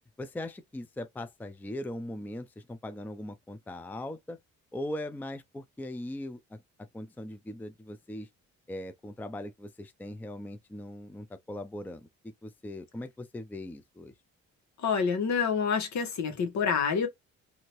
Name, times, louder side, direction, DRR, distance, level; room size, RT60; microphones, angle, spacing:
voice 1, 0.2-4.4 4.7-6.6 6.9-8.3 8.7-12.0 12.4-14.1, left 1 dB, 5° left, 0.4 m, -40 dB
voice 2, 14.8-17.1, left 6 dB, 65° left, 1.3 m, -27 dB
2.8 x 2.7 x 2.9 m
cardioid pair, 90°, 30 cm